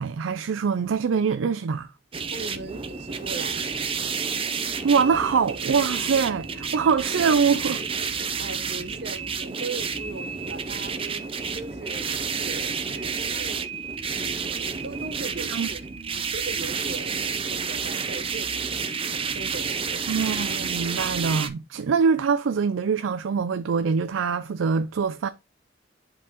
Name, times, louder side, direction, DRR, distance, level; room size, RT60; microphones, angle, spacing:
voice 1, 0.0-1.9 4.8-7.8 15.5-15.7 20.1-25.3, right 5 dB, 85° right, 0.4 m, -24 dB
sound 1, 2.1-21.5, right 5 dB, 30° right, 0.6 m, -30 dB
voice 2, 2.2-3.7 8.1-13.7 14.1-18.9 19.3-20.1, right 3 dB, 60° right, 0.9 m, -39 dB
11.0 x 3.9 x 2.9 m
head